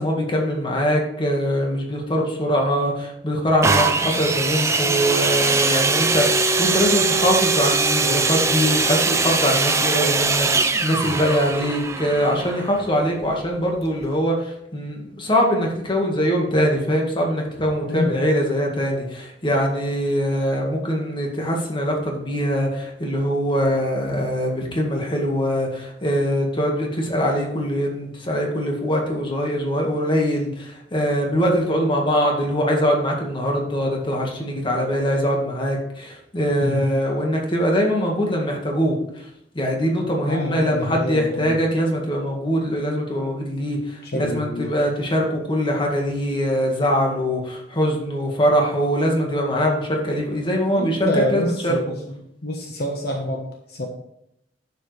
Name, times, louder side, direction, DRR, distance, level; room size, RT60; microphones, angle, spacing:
voice 1, 0.0-39.3 39.5-51.8, equal, 25° left, 0 dB, 1.8 m, -22 dB
sound 1, 3.6-13.3 14.0-14.1, right 3 dB, 15° right, 0.5 m, -21 dB
voice 2, 17.9-18.3 36.6-36.8 40.3-41.6 44.0-44.7 50.7-52.0 52.4-53.4 53.7-53.9, left 1 dB, 55° left, 2 dB, 1.2 m, -26 dB
10.5 x 7.3 x 3.4 m, 0.78 s
head